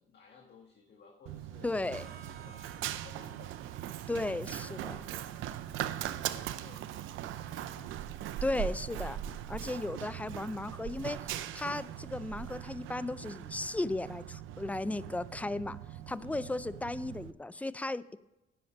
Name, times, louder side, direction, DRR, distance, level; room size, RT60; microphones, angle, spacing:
voice 1, 0.0-1.7 2.1-3.6 4.1-8.0 16.2-16.5, left 5 dB, 60° left, -1 dB, 1.9 m, -58 dB
Run, 1.3-17.3, right 11 dB, 85° right, 0.6 m, -40 dB
voice 2, 1.6-2.1 4.1-5.0 8.4-9.2 9.5-11.2 11.5-15.8 16.1-18.2, left 2 dB, 5° left, 17 dB, 0.4 m, -35 dB
Harmonica, 1.9-9.8, right 8 dB, 50° right, 1.0 m, -58 dB
10.0 x 8.0 x 5.3 m, 0.98 s
cardioid pair, 90°, 20 cm